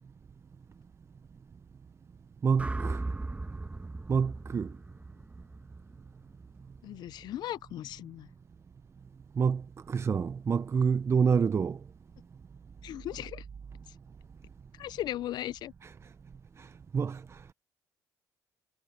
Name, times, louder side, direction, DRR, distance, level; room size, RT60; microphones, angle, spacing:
voice 1, 2.4-3.0 4.1-4.7 9.4-11.8 15.8-15.9 16.6-17.4, right 6 dB, 35° right, 0.6 m, -28 dB
sound 1, 2.6-6.8, right 2 dB, 20° right, 1.3 m, -38 dB
voice 2, 6.8-8.3 12.8-13.4 14.8-15.7, left 13 dB, 70° left, 0.5 m, -37 dB
supercardioid pair, 75°, 8 cm